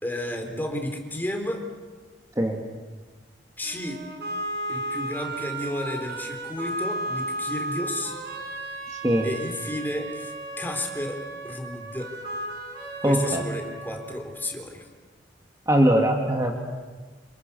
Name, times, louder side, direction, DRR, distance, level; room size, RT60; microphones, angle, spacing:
voice 1, 0.0-1.7 3.6-4.0 4.7-8.2 9.2-11.2 11.4-12.1 13.0-14.9, left 1 dB, 10° left, 3 dB, 3.9 m, -32 dB
sound 1, 3.6-14.6, right 1 dB, 60° right, 6.2 m, -34 dB
voice 2, 8.9-9.3 13.0-13.4 15.7-16.6, right 1 dB, 20° right, 1 dB, 2.3 m, -21 dB
29.0 x 28.5 x 7.1 m, 1.4 s
head